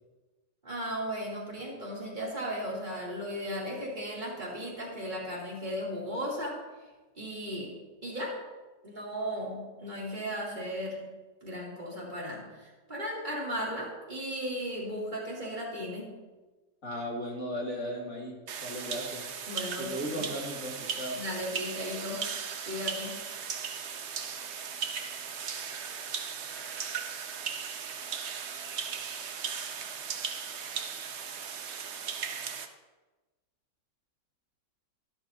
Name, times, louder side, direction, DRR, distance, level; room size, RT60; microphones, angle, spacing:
voice 1, 0.6-6.6 7.2-7.7 8.0-8.4 8.8-11.1 11.4-16.1 19.5-20.2 21.1-22.2 22.7-23.2, equal, 25° right, -5 dB, 2.9 m, -36 dB
voice 2, 16.8-18.3 18.6-19.2 19.8-21.2, equal, 50° left, -3 dB, 2.6 m, -36 dB
sound 1, 18.5-32.7, right 6 dB, 55° right, 0.8 m, -37 dB
12.0 x 12.0 x 2.7 m, 1.2 s
omnidirectional pair, 1.8 m